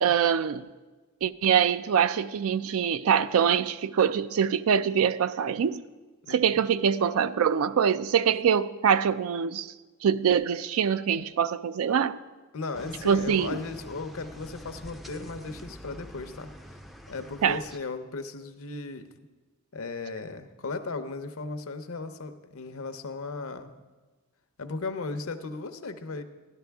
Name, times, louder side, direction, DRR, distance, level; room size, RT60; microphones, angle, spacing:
voice 1, 0.0-0.7 1.2-5.8 6.3-9.7 10.0-12.2 13.0-13.6 17.4-17.6, right 7 dB, 75° right, 0.4 m, -24 dB
voice 2, 6.2-6.6 12.5-16.5 17.1-19.1 19.7-23.7 24.6-26.2, left 3 dB, 70° left, 0.7 m, -36 dB
sound 1, 12.7-17.8, equal, ahead, 0.4 m, -45 dB
13.0 x 11.0 x 3.5 m
head